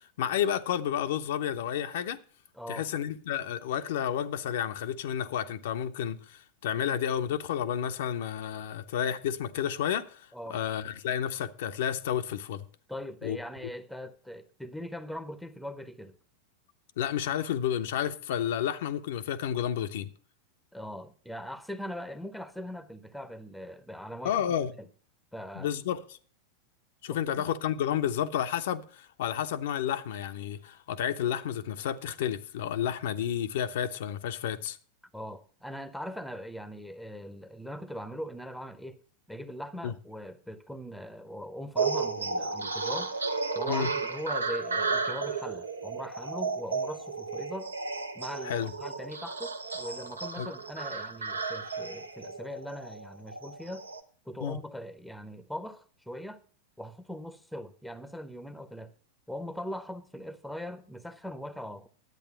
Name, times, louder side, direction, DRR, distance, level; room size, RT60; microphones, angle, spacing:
voice 1, 0.2-2.2 2.7-12.6 13.2-13.4 17.0-20.1 24.2-24.7 25.5-26.0 27.0-34.8 39.8-39.9 43.7-43.9 48.4-48.7 50.4-50.5 54.4-54.6, left 9 dB, 55° left, 0.6 m, -31 dB
voice 2, 2.6-2.9 10.3-10.6 12.9-16.2 20.7-24.9 25.3-25.7 27.1-27.4 35.1-39.0 39.3-43.1 43.5-47.7 48.1-53.9 54.3-56.4 56.8-58.9 59.3-61.9, equal, ahead, 0.7 m, -41 dB
sound 1, 41.8-54.0, right 4 dB, 75° right, 0.8 m, -33 dB
10.5 x 8.5 x 5.6 m
figure-of-eight pair, 90°, 0 cm